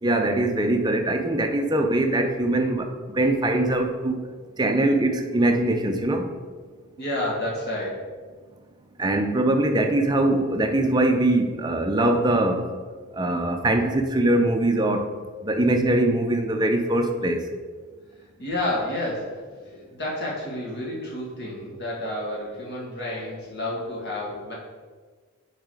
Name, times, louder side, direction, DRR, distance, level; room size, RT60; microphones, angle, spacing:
voice 1, 0.0-4.2 4.6-6.3 9.0-12.7 13.1-15.1 15.4-17.5, right 1 dB, 20° right, 5 dB, 0.5 m, -22 dB
voice 2, 7.0-8.0 18.4-24.5, left 1 dB, 50° left, -4 dB, 2.0 m, -30 dB
8.5 x 4.1 x 5.0 m, 1.5 s
head